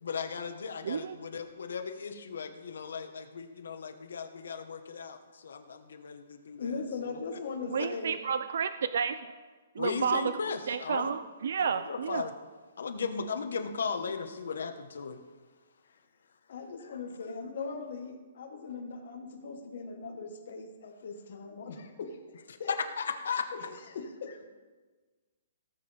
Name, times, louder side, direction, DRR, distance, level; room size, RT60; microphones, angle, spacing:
voice 1, 0.0-7.2 9.8-11.1 11.6-12.3 12.8-15.2 22.7-23.5, left 5 dB, 75° left, 7 dB, 1.2 m, -36 dB
voice 2, 0.8-1.2 7.7-9.2 9.8-10.3 10.7-12.2, right 7 dB, 55° right, 12 dB, 0.4 m, -31 dB
voice 3, 6.6-8.2 16.5-22.8 23.6-24.5, left 4 dB, 50° left, 2 dB, 1.4 m, -40 dB
18.0 x 7.5 x 3.5 m, 1.3 s
hypercardioid pair, 175°, 0 cm